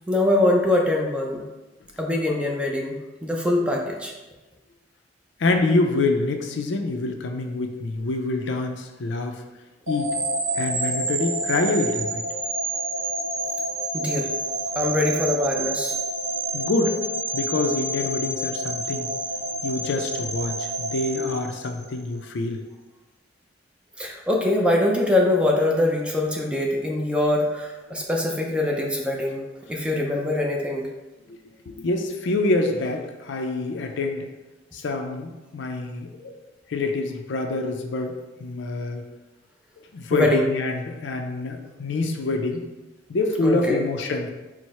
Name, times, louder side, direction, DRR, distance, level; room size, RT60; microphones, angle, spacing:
voice 1, 0.1-1.4 2.0-4.1 13.9-14.3 14.8-15.9 24.0-29.4 29.7-30.9 40.1-40.5 43.4-43.8, left 1 dB, 5° right, -1 dB, 0.4 m, -23 dB
voice 2, 5.4-9.4 9.9-10.2 10.6-12.2 16.5-17.0 17.3-19.1 19.6-22.6 31.3-31.4 31.7-34.3 34.7-36.3 36.7-39.0 39.9-42.7 43.1-44.3, left 2 dB, 65° left, 4 dB, 0.4 m, -26 dB
sound 1, 9.9-22.0, right 2 dB, 80° right, 0.7 m, -28 dB
4.6 x 2.0 x 4.1 m, 1.1 s
head